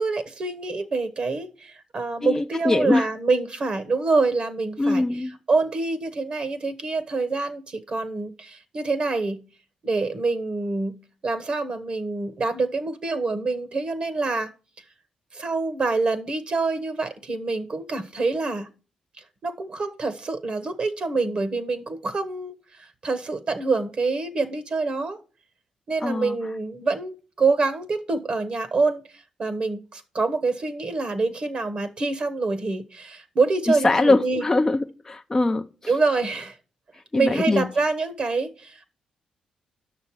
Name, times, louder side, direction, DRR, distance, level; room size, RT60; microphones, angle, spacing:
voice 1, 0.0-9.4 9.8-11.0 11.2-14.5 15.3-18.7 19.4-25.2 25.9-34.4 35.9-36.6 37.1-38.8, right 3 dB, 45° right, 1.2 m, -26 dB
voice 2, 2.2-3.1 4.8-5.4 26.0-26.4 33.7-35.7 37.1-37.7, left 2 dB, 20° left, 0.5 m, -22 dB
9.0 x 6.4 x 4.7 m
cardioid pair, 85°, 2 cm